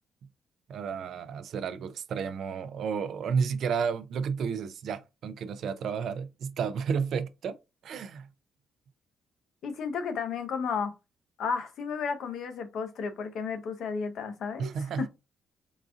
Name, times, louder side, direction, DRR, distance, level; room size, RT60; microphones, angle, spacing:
voice 1, 0.7-7.6 7.8-8.3 14.6-15.1, right 6 dB, 70° right, 0.4 m, -32 dB
voice 2, 9.6-10.9 11.4-14.7, left 5 dB, 70° left, 0.7 m, -33 dB
3.9 x 2.5 x 2.5 m
cardioid pair, 90°, 0 cm